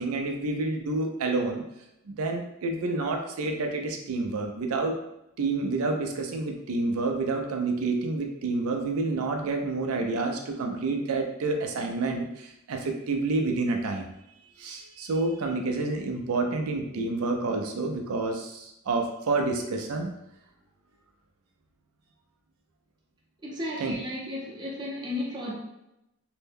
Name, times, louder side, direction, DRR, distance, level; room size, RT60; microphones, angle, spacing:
voice 1, 0.0-1.6 2.0-5.0 5.4-14.1 14.6-20.1 23.8-23.9, right 3 dB, 90° right, 3 dB, 0.4 m, -29 dB
voice 2, 23.4-25.5, left 1 dB, 20° right, -4 dB, 0.6 m, -34 dB
2.6 x 2.1 x 3.5 m, 0.86 s
head